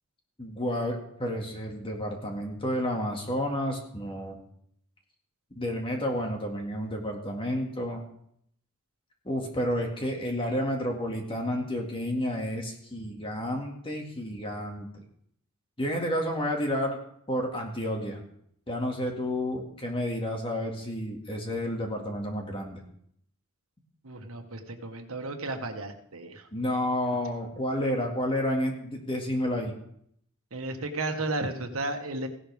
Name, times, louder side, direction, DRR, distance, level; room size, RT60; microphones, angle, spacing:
voice 1, 0.4-4.4 5.5-8.0 9.3-15.0 15.8-17.0 17.3-18.2 18.7-22.8 26.5-29.7, equal, 25° left, 1 dB, 2.0 m, -30 dB
voice 2, 24.0-26.5 30.5-32.3, right 2 dB, 80° right, 5 dB, 1.5 m, -33 dB
16.5 x 11.5 x 3.5 m, 0.68 s
head